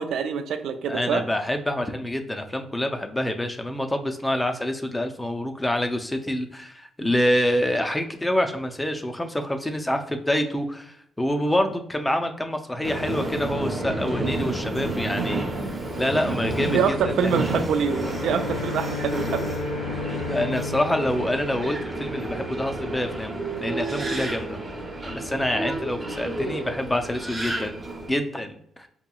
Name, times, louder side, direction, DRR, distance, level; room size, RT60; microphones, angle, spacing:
voice 1, 0.0-1.2 16.7-19.5, right 6 dB, 75° right, 9 dB, 0.4 m, -25 dB
voice 2, 0.9-15.7 16.0-17.0 17.2-17.3 20.3-24.6 25.0-27.7 28.1-28.9, left 1 dB, 10° left, 6 dB, 0.4 m, -26 dB
Subway metro underground, 12.8-28.1, right 2 dB, 25° right, 0.7 m, -30 dB
Bowed string instrument, 17.9-22.5, left 8 dB, 85° left, 0.7 m, -35 dB
4.6 x 2.9 x 2.2 m, 0.72 s
cardioid pair, 90°, 0 cm